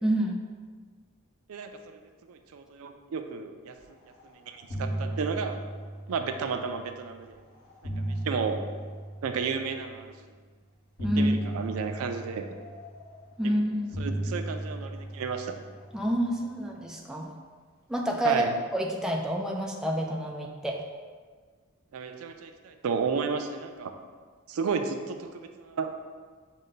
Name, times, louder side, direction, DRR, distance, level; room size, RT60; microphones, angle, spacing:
voice 1, 0.0-0.4 11.0-11.5 13.4-14.0 15.9-17.3 17.9-18.4 18.7-20.8, equal, 5° right, 0 dB, 0.4 m, -28 dB
voice 2, 2.3-3.7 4.5-5.6 6.1-7.4 8.1-8.6 9.2-10.1 11.2-12.5 13.4-13.6 14.0-15.5 18.2-18.5 21.9-23.9 24.5-25.9, right 5 dB, 85° right, 6 dB, 0.4 m, -32 dB
sound 1, 4.0-4.3 4.5-6.9 7.5-10.0 11.0-13.4 13.9-16.5, right 1 dB, 80° left, 1.4 m, -36 dB
6.2 x 2.2 x 3.9 m, 1.6 s
head